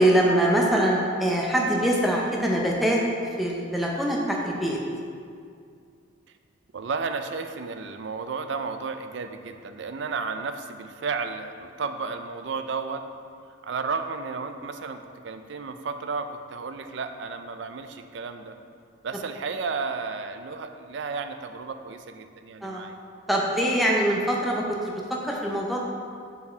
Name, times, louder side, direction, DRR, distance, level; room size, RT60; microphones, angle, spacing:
voice 1, 0.0-3.0 3.4-4.8 22.6-22.8 23.3-25.8, right 1 dB, ahead, -3 dB, 0.6 m, -23 dB
voice 2, 6.7-13.0 13.6-18.6 19.0-22.9, right 4 dB, 60° right, 8 dB, 0.4 m, -33 dB
6.9 x 4.7 x 4.3 m, 2.3 s
head